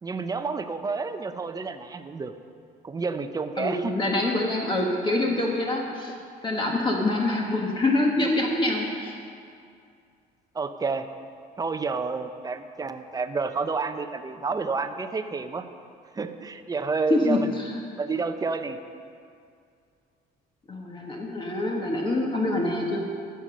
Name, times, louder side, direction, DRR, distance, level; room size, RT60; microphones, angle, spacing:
voice 1, 0.0-2.3 2.8-4.0 6.1-6.2 10.5-11.1 11.6-15.6 16.1-17.5 18.0-18.8, right 4 dB, 20° right, 8 dB, 0.7 m, -29 dB
voice 2, 3.6-6.1 6.4-9.1 17.1-17.7 20.7-23.0, left 2 dB, 30° left, -1 dB, 1.5 m, -25 dB
14.5 x 7.0 x 6.3 m, 2.3 s
cardioid pair, 110°, 17 cm